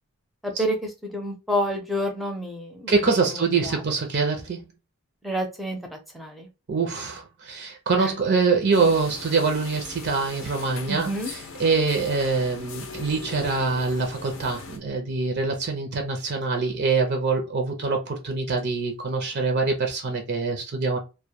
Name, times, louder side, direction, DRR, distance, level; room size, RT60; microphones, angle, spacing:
voice 1, 0.4-2.9 3.3-3.8 5.2-6.5 8.0-8.1 10.9-11.3, equal, ahead, 0.5 m, -29 dB
voice 2, 2.9-4.6 6.7-21.0, right 4 dB, 55° right, 0.5 m, -24 dB
sound 1, 8.7-14.8, left 4 dB, 70° left, 0.5 m, -40 dB
2.2 x 2.1 x 2.8 m
head